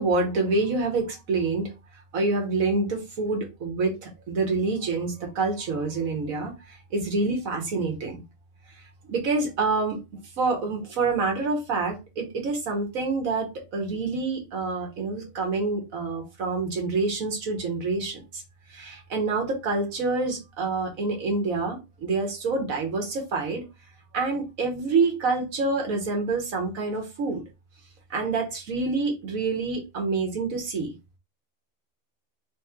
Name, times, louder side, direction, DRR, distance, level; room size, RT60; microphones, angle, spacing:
voice 1, 0.0-1.7 2.1-8.2 9.0-10.0 10.4-18.4 18.7-23.6 24.1-27.4 28.1-30.9, right 3 dB, 85° right, 2 dB, 1.6 m, -27 dB
3.7 x 3.2 x 3.5 m, 0.25 s
omnidirectional pair, 1.4 m